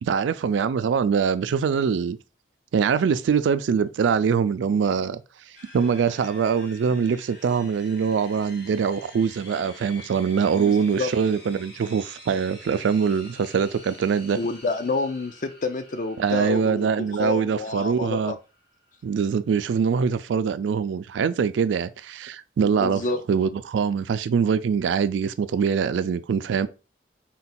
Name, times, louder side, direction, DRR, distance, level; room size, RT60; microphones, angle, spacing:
voice 1, 0.0-2.2 2.7-5.2 5.7-14.4 16.2-18.4 19.0-23.0 23.3-26.7, right 6 dB, 80° right, 0.3 m, -23 dB
sound 1, 5.5-19.6, left 1 dB, 60° left, 1.6 m, -48 dB
voice 2, 10.5-11.1 14.3-18.4 22.6-23.2, left 3 dB, 45° left, 0.4 m, -29 dB
3.8 x 2.3 x 4.2 m
head